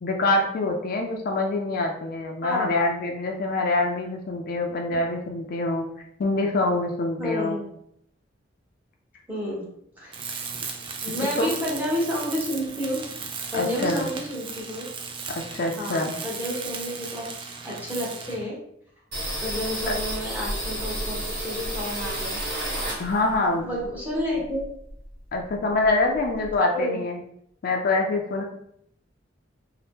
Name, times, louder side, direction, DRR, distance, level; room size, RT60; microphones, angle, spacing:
voice 1, 0.0-5.9 6.2-7.6 11.2-11.5 13.5-14.1 15.5-16.1 23.0-23.7 25.3-27.2 27.6-28.4, left 2 dB, 50° left, 2 dB, 0.4 m, -25 dB
voice 2, 7.2-7.7 9.3-9.6 10.0-10.5 11.0-13.0 13.5-14.9 15.8-17.2 17.6-18.6 19.4-22.4 22.9-23.0 23.5-24.6 26.7-27.0, equal, 10° right, -5 dB, 0.8 m, -30 dB
Tools, 10.1-18.5, right 5 dB, 25° right, 0.3 m, -36 dB
sound 1, 19.1-23.5 23.8-25.2 25.5-25.6 25.8-26.5, right 1 dB, 65° right, 1.3 m, -31 dB
2.7 x 2.0 x 3.4 m, 0.72 s
head